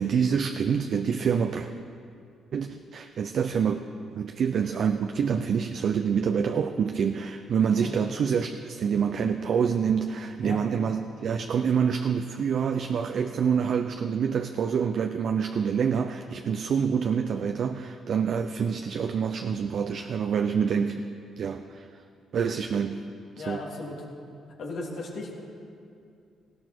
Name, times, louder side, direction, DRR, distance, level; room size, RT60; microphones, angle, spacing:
voice 1, 0.0-1.7 2.5-3.8 4.1-21.0 21.4-21.9 22.3-23.0 23.5-23.6, right 7 dB, 60° right, 6 dB, 0.7 m, -26 dB
voice 2, 23.4-24.0 24.6-25.3, left 3 dB, 70° left, -3 dB, 3.3 m, -36 dB
19.0 x 15.5 x 4.6 m, 2.4 s
cardioid pair, 90°, 0 cm